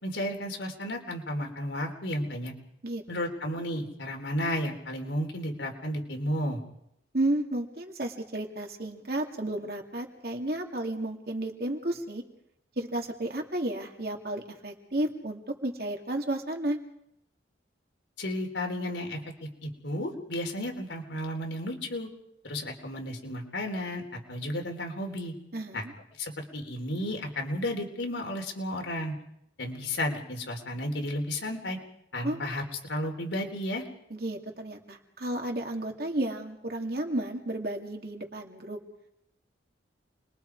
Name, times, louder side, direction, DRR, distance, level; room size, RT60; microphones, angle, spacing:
voice 1, 0.0-2.5 3.1-6.6 18.2-19.2 19.6-22.1 22.4-24.0 24.3-25.3 25.7-25.8 26.2-29.1 29.6-31.8 32.1-33.8, left 1 dB, 80° left, 2 dB, 3.9 m, -33 dB
voice 2, 2.8-3.3 7.1-12.2 12.8-16.8 25.5-25.9 32.2-32.4 34.1-38.8, right 1 dB, 55° right, 3 dB, 2.7 m, -32 dB
29.0 x 22.0 x 4.8 m, 0.79 s
head